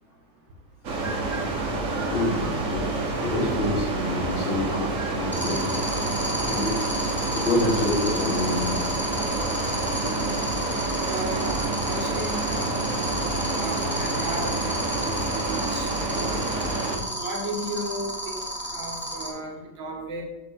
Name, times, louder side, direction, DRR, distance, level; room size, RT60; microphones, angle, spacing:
sound 1, 0.8-17.0, right 2 dB, 45° right, 1.3 m, -28 dB
voice 1, 1.9-8.7 13.0-13.5 17.2-17.3, left 2 dB, 75° left, -8 dB, 3.9 m, -28 dB
sound 2, 5.3-19.3, equal, 5° left, 1.0 m, -31 dB
voice 2, 11.0-12.5 13.6-16.7 17.2-18.5 18.7-20.2, right 2 dB, 70° right, 1 dB, 2.0 m, -35 dB
7.5 x 3.8 x 6.2 m, 0.99 s
omnidirectional pair, 2.2 m